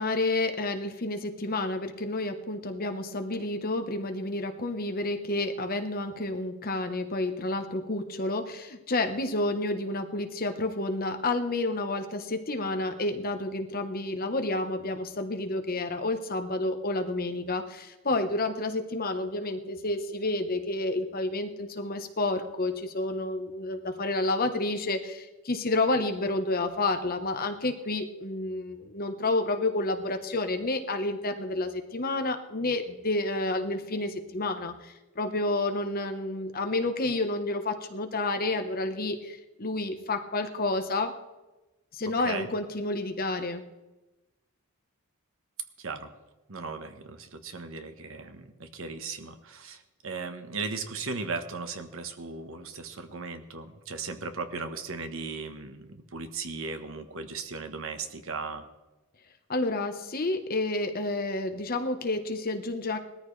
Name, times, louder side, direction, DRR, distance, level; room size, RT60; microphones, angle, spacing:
voice 1, 0.0-41.1 41.9-43.6 59.5-63.0, left 2 dB, 40° left, 6 dB, 1.2 m, -30 dB
voice 2, 45.8-46.1 46.5-58.7, right 4 dB, 65° right, 8 dB, 1.2 m, -37 dB
19.0 x 13.5 x 3.3 m, 1.1 s
head